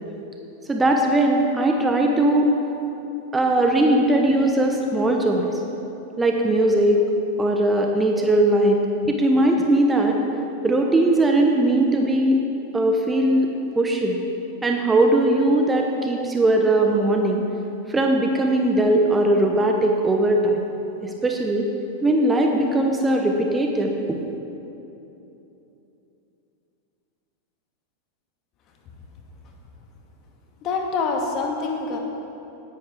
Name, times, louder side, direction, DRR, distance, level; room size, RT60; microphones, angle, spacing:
voice 1, 0.7-2.5 3.3-5.6 6.2-7.0 7.4-8.8 9.0-10.2 10.6-12.4 12.7-14.1 14.6-17.4 17.9-20.6 21.0-21.7 22.0-24.2, right 1 dB, 10° right, 2 dB, 1.0 m, -19 dB
voice 2, 30.6-32.0, left 4 dB, 35° left, 1 dB, 1.8 m, -25 dB
18.0 x 10.5 x 3.6 m, 3.0 s
figure-of-eight pair, 90°, 0 cm